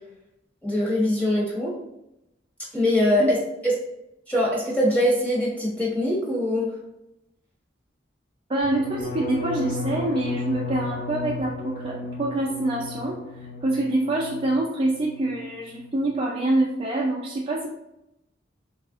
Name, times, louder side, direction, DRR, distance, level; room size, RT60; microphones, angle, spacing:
voice 1, 0.6-1.7 2.7-3.4 3.6-3.7 4.3-6.7, left 1 dB, 5° left, -6 dB, 1.2 m, -22 dB
voice 2, 8.5-13.2 13.6-17.7, right 1 dB, 30° right, -3 dB, 0.4 m, -25 dB
sound 1, 8.6-14.5 14.8-15.3 15.6-16.0, left 2 dB, 45° left, 0.6 m, -34 dB
3.4 x 2.4 x 3.5 m, 0.86 s
head